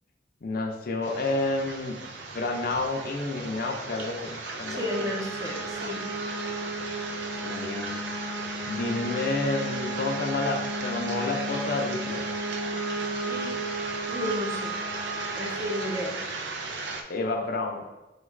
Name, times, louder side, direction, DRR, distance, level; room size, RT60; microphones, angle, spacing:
voice 1, 0.4-2.0 2.3-5.1 7.4-8.0 8.7-12.3 17.1-17.8, left 2 dB, 55° left, 3 dB, 0.5 m, -30 dB
sound 1, 1.0-17.0, right 3 dB, 70° right, 0.4 m, -36 dB
voice 2, 4.7-6.1 13.2-13.6 14.1-14.8 15.3-16.2, equal, 20° right, 0 dB, 0.5 m, -32 dB
sound 2, 4.7-15.9, right 1 dB, 55° right, 0.8 m, -34 dB
5.0 x 2.4 x 3.1 m, 1.0 s
head